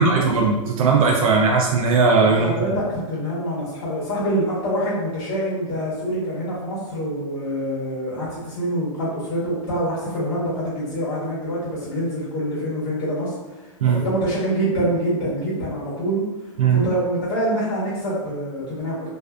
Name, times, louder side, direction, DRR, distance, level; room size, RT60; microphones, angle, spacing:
voice 1, 0.0-2.5 13.8-14.0 16.6-16.8, right 4 dB, 90° right, 0 dB, 0.4 m, -18 dB
voice 2, 2.3-16.2 16.7-19.1, right 1 dB, 40° left, -8 dB, 1.0 m, -25 dB
2.5 x 2.2 x 2.4 m, 1.1 s
supercardioid pair, 160°, 17 cm